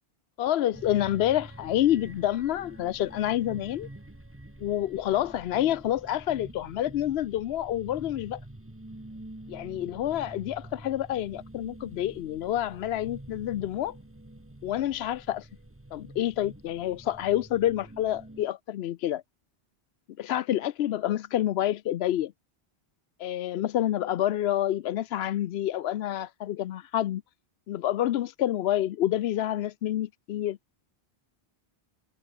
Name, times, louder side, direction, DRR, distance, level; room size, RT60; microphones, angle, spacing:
voice 1, 0.4-3.9 4.6-8.4 9.5-14.0 14.6-15.5 15.9-19.2 20.2-22.3 23.2-27.2 27.7-30.6, left 12 dB, 85° left, 0.8 m, -28 dB
sound 1, 0.7-18.5, right 1 dB, 15° right, 1.5 m, -47 dB
omnidirectional pair, 1.0 m